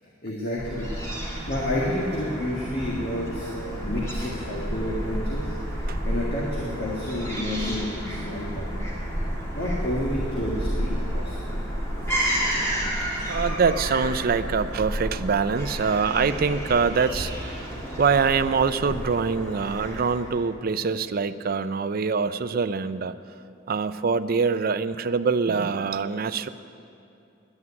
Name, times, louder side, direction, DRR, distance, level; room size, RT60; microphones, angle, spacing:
voice 1, 0.2-0.9 1.5-8.8 9.5-11.6, left 1 dB, 50° left, -4 dB, 1.8 m, -30 dB
Fowl / Gull seagull, 0.6-20.5, equal, 15° left, 2.5 m, -31 dB
voice 2, 13.3-23.1 23.7-26.5, right 5 dB, 50° right, 12 dB, 0.4 m, -24 dB
11.0 x 9.9 x 9.8 m, 2.6 s
head